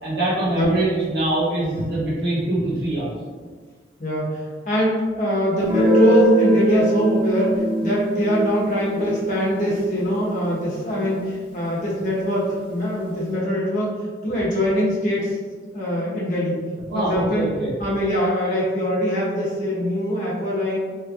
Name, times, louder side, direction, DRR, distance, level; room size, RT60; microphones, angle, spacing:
voice 1, 0.0-3.2 16.9-17.7, right 1 dB, 65° right, -9 dB, 0.7 m, -23 dB
voice 2, 4.0-15.4 15.7-16.6 16.9-17.5 17.8-20.8, equal, 45° left, -6 dB, 1.0 m, -23 dB
Guitar, 5.6-11.1, right 1 dB, 25° right, 1.1 m, -22 dB
3.2 x 3.2 x 2.4 m, 1.5 s
head